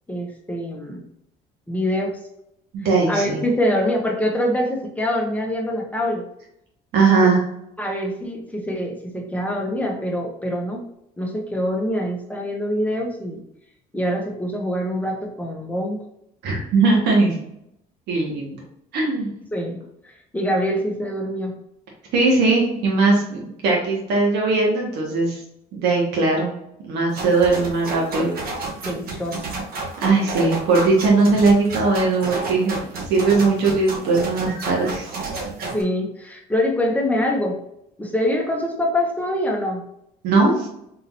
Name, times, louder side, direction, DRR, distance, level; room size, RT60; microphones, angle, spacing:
voice 1, 0.1-1.1 1.7-2.2 3.1-6.2 7.2-7.3 7.8-10.8 11.2-13.4 13.9-16.0 19.5-19.8 20.0-21.6 28.8-29.6 35.7-37.6 38.0-39.8, left 1 dB, 10° left, 0 dB, 1.1 m, -24 dB
voice 2, 2.7-3.4 6.9-7.4 16.4-17.4 18.1-18.6 18.9-19.3 22.1-25.4 25.8-26.5 26.8-28.3 30.0-32.8 33.1-35.1 40.2-40.7, right 3 dB, 80° right, -2 dB, 1.6 m, -19 dB
sound 1, 27.1-35.8, right 3 dB, 65° right, 1.2 m, -31 dB
4.2 x 3.8 x 2.7 m, 0.78 s
cardioid pair, 110°, 17 cm